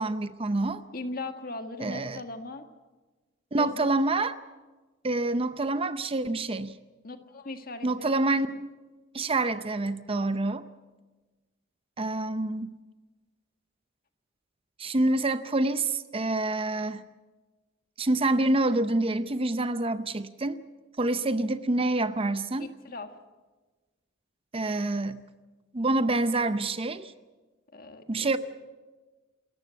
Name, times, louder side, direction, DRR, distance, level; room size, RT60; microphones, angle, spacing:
voice 1, 0.0-0.8 1.8-2.2 3.5-4.3 5.0-6.8 7.8-8.7 9.1-10.6 12.0-12.8 14.8-17.0 18.0-20.6 21.0-22.7 24.5-25.2 25.7-27.1 28.1-28.4, right 2 dB, 30° right, 12 dB, 0.6 m, -27 dB
voice 2, 0.9-2.6 3.5-3.9 7.0-8.2 22.8-23.2 27.7-28.4, left 2 dB, 45° left, 7 dB, 1.6 m, -38 dB
28.0 x 14.0 x 8.3 m, 1.3 s
head